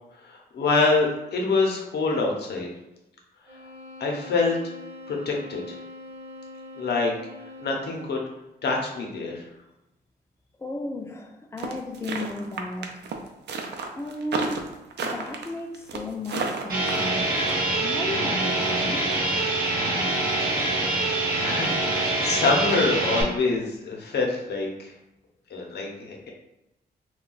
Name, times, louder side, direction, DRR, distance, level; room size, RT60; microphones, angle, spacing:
voice 1, 0.5-2.7 4.0-4.6 5.1-5.7 6.8-7.1 7.6-8.2 8.6-9.4 21.4-24.7 25.5-26.3, left 3 dB, 70° left, 0 dB, 0.7 m, -25 dB
sound 1, 3.5-8.3, left 2 dB, 35° right, 0.6 m, -43 dB
voice 2, 10.6-13.0 13.9-14.7 15.0-17.3 17.8-19.2, left 2 dB, 15° left, 3 dB, 0.4 m, -34 dB
sound 2, 11.6-17.5, right 4 dB, 75° right, 0.4 m, -31 dB
sound 3, 16.7-23.2, right 2 dB, 55° right, 1.0 m, -25 dB
2.3 x 2.3 x 3.8 m, 0.91 s
cardioid pair, 90°, 18 cm